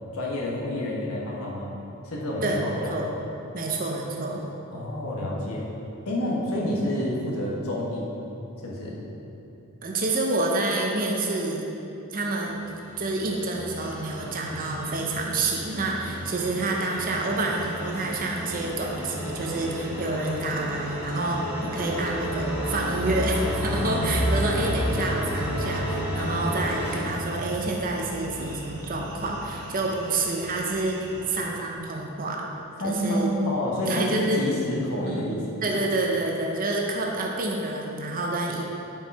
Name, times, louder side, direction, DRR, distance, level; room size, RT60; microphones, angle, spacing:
voice 1, 0.1-1.8 2.0-3.0 4.7-5.7 6.0-8.2 8.6-9.0 32.8-35.6, left 1 dB, 70° left, -4 dB, 1.4 m, -28 dB
voice 2, 2.4-3.0 3.5-4.4 9.8-11.7 12.1-12.6 13.0-32.4 32.8-33.3 33.9-34.4 35.1-35.2 35.6-38.6, right 2 dB, 40° right, -1 dB, 0.7 m, -28 dB
sound 1, 12.4-27.1, equal, 10° right, 1.0 m, -34 dB
sound 2, 16.8-31.4, equal, 75° right, 1.2 m, -34 dB
7.9 x 4.7 x 4.7 m, 2.9 s
head